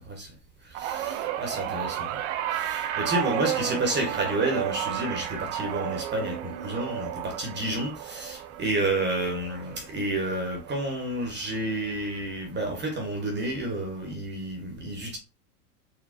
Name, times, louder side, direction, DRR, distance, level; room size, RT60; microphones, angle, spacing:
voice 1, 0.8-2.2 2.5-15.2, right 1 dB, 20° right, 1.0 m, -30 dB
sound 1, 0.8-11.2 11.5-11.9 13.1-13.2, right 12 dB, 50° right, 0.5 m, -33 dB
4.0 x 2.1 x 2.5 m
hypercardioid pair, 90°, 48 cm